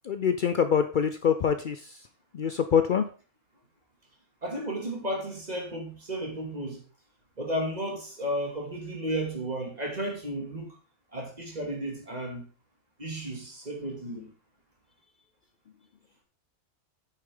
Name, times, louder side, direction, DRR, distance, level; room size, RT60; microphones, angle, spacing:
voice 1, 0.0-2.0 2.3-3.1, left 7 dB, 85° left, 0.4 m, -25 dB
voice 2, 4.4-6.8 7.4-10.8 11.1-12.4 13.0-14.3, right 1 dB, 30° right, 2.4 m, -33 dB
8.6 x 6.8 x 3.8 m
omnidirectional pair, 1.6 m